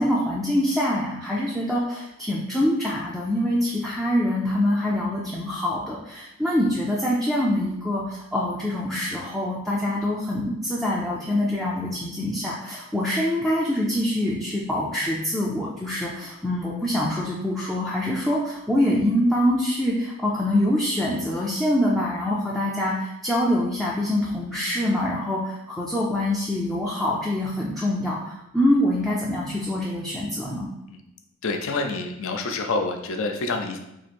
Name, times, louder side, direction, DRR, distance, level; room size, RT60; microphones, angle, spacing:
voice 1, 0.0-30.7, left 1 dB, ahead, -6 dB, 0.3 m, -25 dB
voice 2, 31.4-33.8, left 3 dB, 60° left, 4 dB, 0.4 m, -27 dB
2.9 x 2.5 x 4.2 m, 0.86 s
head